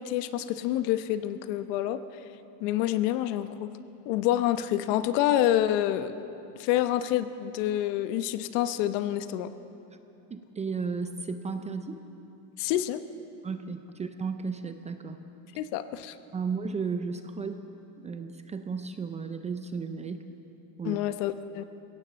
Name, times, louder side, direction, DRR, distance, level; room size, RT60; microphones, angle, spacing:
voice 1, 0.0-2.0 2.6-3.7 4.0-6.1 6.6-9.5 12.6-13.0 15.6-16.1 20.8-21.6, left 12 dB, 75° left, 12 dB, 1.1 m, -27 dB
voice 2, 10.3-12.0 13.4-15.2 16.3-17.6 18.0-20.3 20.8-21.1, right 5 dB, 15° right, 8 dB, 0.4 m, -34 dB
22.5 x 17.0 x 7.0 m, 2.9 s
cardioid pair, 155°, 48 cm